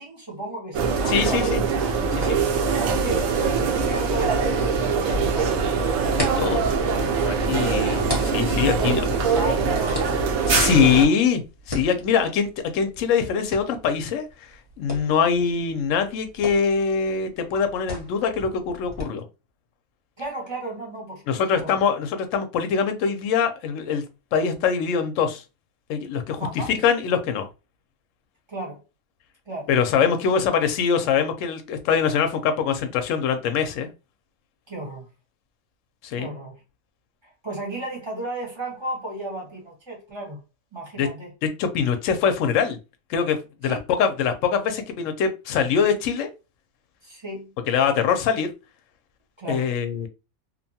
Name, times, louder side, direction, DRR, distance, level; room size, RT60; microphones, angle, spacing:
voice 1, 0.0-1.6 2.7-5.5 7.6-8.1 8.8-10.3 11.0-11.1 20.2-21.7 26.4-26.7 28.5-28.8 29.5-29.7 34.7-35.1 36.2-36.5 37.2-40.4 40.7-41.3 43.6-43.8 47.0-47.5 49.4-49.7, right 2 dB, 25° right, 0.8 m, -34 dB
sound 1, 0.7-11.1, right 5 dB, 75° right, 0.9 m, -23 dB
voice 2, 1.1-1.6 2.1-2.4 6.1-6.8 7.2-8.0 8.3-9.0 10.5-11.4 11.7-12.5 12.7-14.2 14.8-19.2 21.3-24.0 24.3-25.4 25.9-27.5 29.7-33.9 36.0-36.3 41.0-41.1 41.4-42.8 43.1-46.3 47.7-48.5 49.5-50.1, left 6 dB, 70° left, 0.9 m, -23 dB
sound 2, 5.9-19.0, left 1 dB, 20° left, 0.8 m, -38 dB
2.7 x 2.2 x 2.7 m
omnidirectional pair, 1.5 m